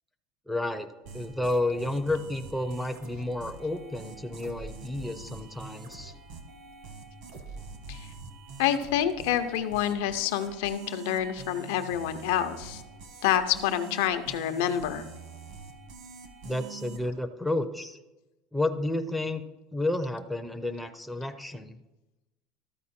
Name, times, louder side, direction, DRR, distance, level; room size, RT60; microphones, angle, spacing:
voice 1, 0.5-0.9 1.1-6.1 16.4-18.0 18.5-19.4 19.7-21.8, left 2 dB, ahead, 6 dB, 0.4 m, -31 dB
sound 1, 1.1-17.1, right 4 dB, 65° right, 1.3 m, -45 dB
voice 2, 8.6-12.8 13.2-15.1, left 10 dB, 85° left, 8 dB, 0.7 m, -27 dB
13.0 x 4.6 x 4.3 m, 1.0 s
cardioid pair, 160°, 0 cm